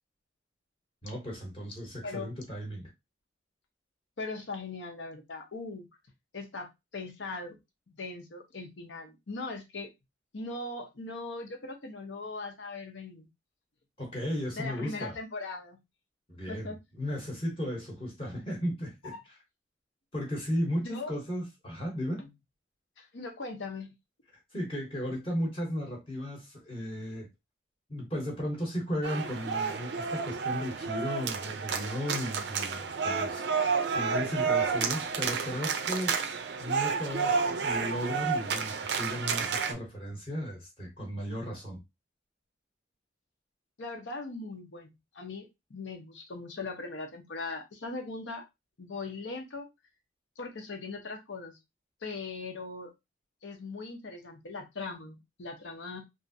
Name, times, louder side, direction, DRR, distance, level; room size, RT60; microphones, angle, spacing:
voice 1, 1.0-2.9 14.0-15.2 16.3-19.1 20.1-22.2 24.5-27.3 27.9-33.5 33.9-36.2 36.6-41.8, equal, 30° left, 0.9 m, -35 dB
voice 2, 2.0-2.4 4.2-5.9 6.3-6.7 6.9-7.6 7.9-9.9 10.3-13.3 14.6-15.8 16.4-16.8 19.1-19.2 20.8-21.1 22.2-22.3 23.0-23.9 43.8-48.4 48.8-49.7 50.4-51.6 52.0-52.9 53.4-56.0, left 3 dB, 80° left, 0.8 m, -39 dB
sound 1, 29.0-39.7, right 5 dB, 65° right, 0.4 m, -30 dB
3.1 x 2.5 x 2.6 m
head